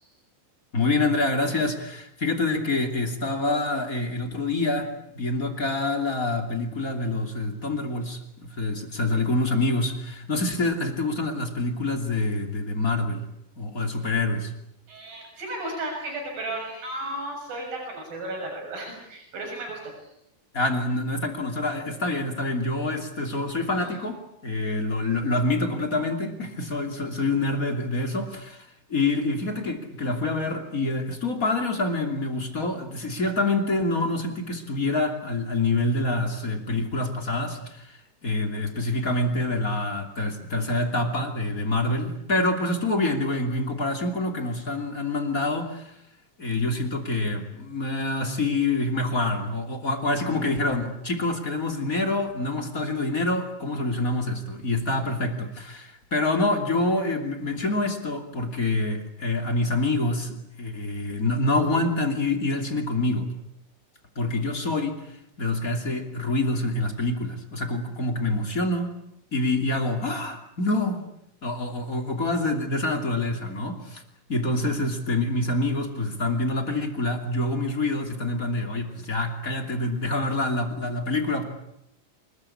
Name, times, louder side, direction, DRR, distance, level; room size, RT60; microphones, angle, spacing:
voice 1, 0.7-13.2 13.6-14.5 20.5-45.9 46.4-63.3 64.1-65.0 65.4-68.9 69.3-71.1 71.4-74.0 74.3-81.4, left 2 dB, 25° left, 4 dB, 2.9 m, -26 dB
voice 2, 14.9-19.8, right 1 dB, 90° right, 1 dB, 8.6 m, -34 dB
27.0 x 21.5 x 8.7 m, 0.79 s
omnidirectional pair, 4.0 m